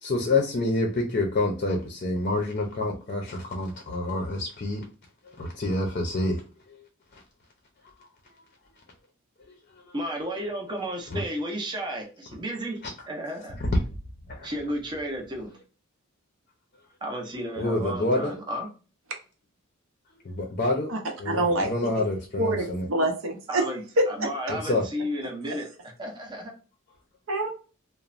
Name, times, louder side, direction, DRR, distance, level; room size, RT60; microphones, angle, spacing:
voice 1, 0.0-4.8 5.4-6.4 7.1-7.2 9.7-9.9 11.1-11.2 13.7-13.8 14.3-14.5 17.6-18.3 20.2-20.9 21.2-22.8 24.6-24.8, left 2 dB, 40° left, 0.5 m, -27 dB
voice 2, 9.9-13.6 14.4-15.5 17.0-18.7 23.5-25.7 26.0-26.5, equal, 20° right, 0.5 m, -33 dB
voice 3, 21.3-22.0 22.4-23.6 24.0-24.1 25.5-25.6 27.3-27.5, right 1 dB, 80° right, 0.7 m, -26 dB
2.9 x 2.1 x 2.4 m
head